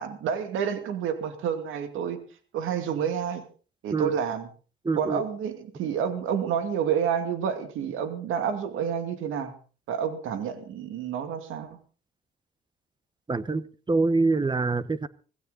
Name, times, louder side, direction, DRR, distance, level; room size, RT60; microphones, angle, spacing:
voice 1, 0.0-2.2 2.5-3.4 3.8-4.5 4.9-9.6 9.9-11.7, right 8 dB, 85° right, 2.5 m, -29 dB
voice 2, 4.8-5.2 13.3-15.1, right 3 dB, 20° right, 1.1 m, -25 dB
17.0 x 16.5 x 4.1 m
cardioid pair, 90°, 20 cm